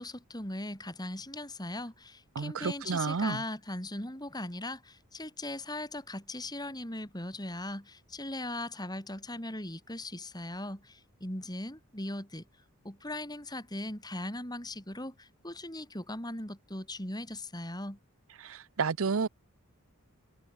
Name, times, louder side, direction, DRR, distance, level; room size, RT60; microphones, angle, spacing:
voice 1, 0.0-12.4 12.8-18.0, left 1 dB, 20° left, 6.5 m, -39 dB
voice 2, 2.3-3.4 18.4-19.3, right 5 dB, 65° right, 0.6 m, -31 dB
head